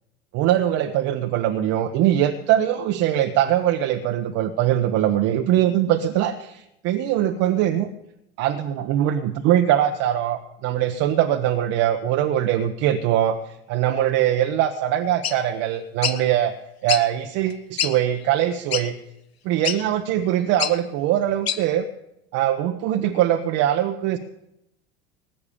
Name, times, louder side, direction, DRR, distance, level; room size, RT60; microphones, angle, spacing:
voice 1, 0.3-7.9 8.4-16.5 16.8-18.9 19.4-21.9 22.3-24.2, right 11 dB, 50° right, 6 dB, 1.1 m, -22 dB
sound 1, 15.2-15.4 16.0-16.2 16.9-17.0 17.5-17.6 17.8-17.9 18.7-18.9 19.6-19.8 20.6-20.7 21.5-21.6, left 9 dB, 80° left, 1.0 m, -24 dB
19.5 x 8.2 x 7.0 m, 0.83 s
figure-of-eight pair, 75°, 31 cm